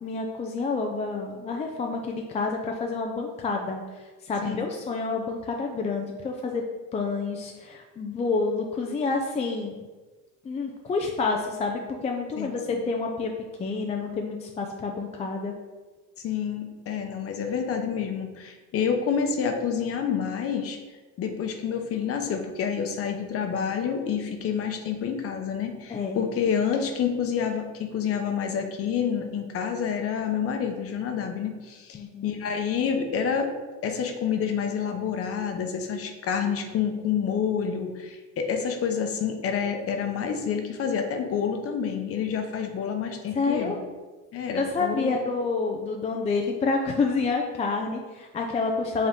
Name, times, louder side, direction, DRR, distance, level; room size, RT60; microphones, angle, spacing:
voice 1, 0.0-3.8 4.2-6.6 6.9-9.7 10.4-13.3 13.6-15.5 25.9-26.3 31.9-32.3 43.3-43.8 44.6-49.1, left 4 dB, 20° left, 2 dB, 0.4 m, -28 dB
voice 2, 12.4-12.8 16.2-20.8 21.2-33.5 33.8-43.7 44.3-45.2, left 7 dB, 45° left, 5 dB, 0.8 m, -28 dB
7.2 x 3.6 x 3.6 m, 1.3 s
cardioid pair, 140°, 32 cm